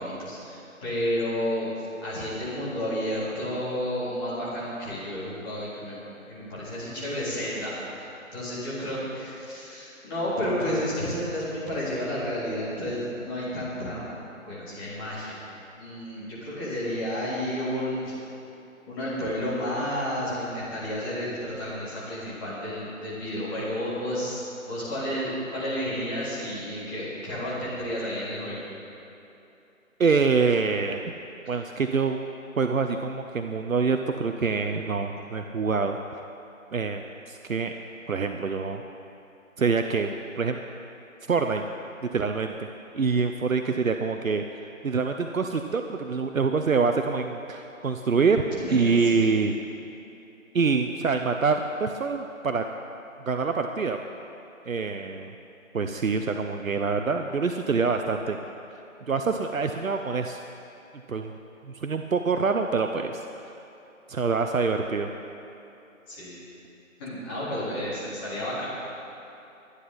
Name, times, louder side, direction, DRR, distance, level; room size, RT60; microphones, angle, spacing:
voice 1, 0.0-6.0 6.3-14.1 14.5-15.4 15.8-18.2 18.9-28.6 31.4-31.6 48.5-49.3 66.1-66.4 67.0-68.7, equal, 15° left, -10 dB, 3.5 m, -31 dB
voice 2, 30.0-31.0 31.5-32.2 32.6-36.2 36.7-37.7 38.1-38.8 39.6-40.6 41.3-41.7 42.0-42.7 42.9-44.4 44.8-48.4 48.7-49.6 50.5-52.6 53.3-54.0 54.7-55.3 55.7-58.4 59.1-60.4 61.1-61.3 61.7-63.2 64.1-65.1, right 4 dB, 75° right, 5 dB, 0.9 m, -25 dB
22.0 x 9.9 x 4.2 m, 2.9 s
figure-of-eight pair, 160°, 41 cm